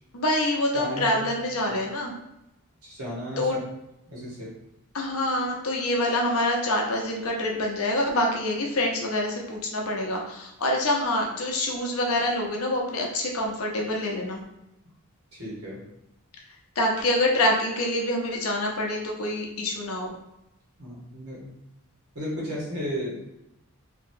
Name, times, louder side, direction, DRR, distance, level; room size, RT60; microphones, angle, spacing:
voice 1, 0.1-2.1 3.4-3.6 4.9-14.4 16.8-20.1, left 1 dB, 80° left, 0 dB, 0.7 m, -26 dB
voice 2, 0.7-1.3 1.7-1.8 2.8-3.6 4.1-4.5 15.3-15.8 20.8-21.5 22.1-23.2, equal, 80° right, -5 dB, 1.3 m, -34 dB
2.9 x 2.8 x 2.7 m, 0.89 s
head